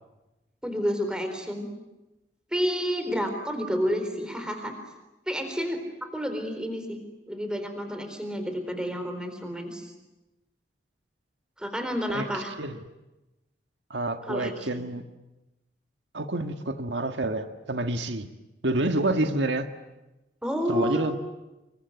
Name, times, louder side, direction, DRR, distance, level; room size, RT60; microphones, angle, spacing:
voice 1, 0.6-1.7 2.5-4.7 5.3-7.0 7.3-9.9 11.6-12.5 14.3-14.9 20.4-21.0, equal, 5° right, 6 dB, 4.0 m, -30 dB
voice 2, 12.1-12.8 13.9-15.0 16.1-18.3 18.6-19.7 20.7-21.2, right 2 dB, 85° right, 7 dB, 1.6 m, -28 dB
26.0 x 23.5 x 9.5 m, 1.0 s
head